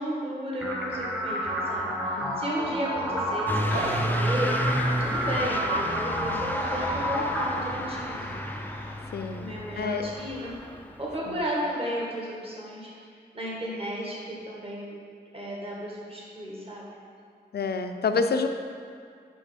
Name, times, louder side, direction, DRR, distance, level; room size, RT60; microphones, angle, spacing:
voice 1, 0.0-4.6 4.8-8.4 9.3-10.5 11.0-12.9 13.3-14.9 15.3-16.9, right 1 dB, 35° right, -5 dB, 1.6 m, -34 dB
sound 1, 0.6-8.6, equal, 10° right, 1.1 m, -30 dB
voice 2, 2.2-2.5 9.1-9.5 9.8-10.1 11.3-11.4 17.5-18.5, left 4 dB, 70° left, 7 dB, 0.5 m, -28 dB
Truck / Accelerating revving vroom, 3.5-11.4, equal, 10° left, 0.4 m, -32 dB
sound 2, 3.7-9.0, right 1 dB, 60° right, 1.9 m, -39 dB
5.8 x 5.3 x 5.1 m, 2.3 s
wide cardioid pair, 100°, 17 cm